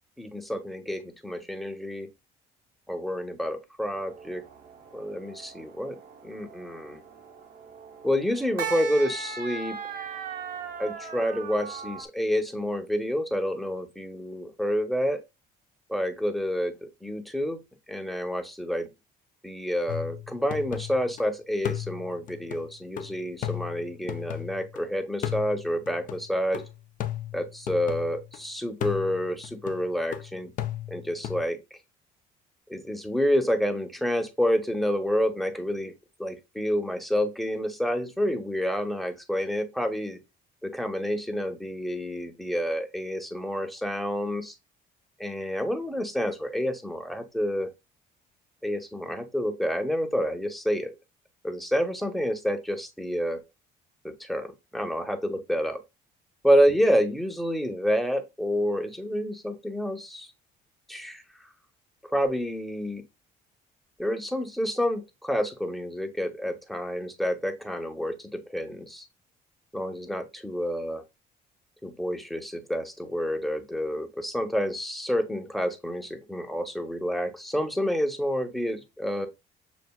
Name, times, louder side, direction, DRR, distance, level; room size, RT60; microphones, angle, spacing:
voice 1, 0.2-2.1 2.9-4.4 4.9-7.0 8.0-9.8 10.8-15.2 15.9-17.6 17.9-18.9 19.4-26.6 27.3-30.5 30.9-31.6 32.7-35.9 36.2-40.2 40.6-44.5 45.2-47.7 48.6-50.9 51.4-53.4 54.0-55.8 56.4-60.3 60.9-61.2 62.0-63.0 64.0-69.0 69.7-71.0 71.8-79.3, equal, ahead, 0.8 m, -28 dB
sound 1, 3.9-12.1, right 6 dB, 60° right, 0.8 m, -39 dB
sound 2, 19.9-21.2 21.6-24.8 25.2-28.4 28.8-31.4, left 11 dB, 50° left, 0.5 m, -36 dB
6.9 x 2.4 x 2.3 m
cardioid pair, 110°, 17 cm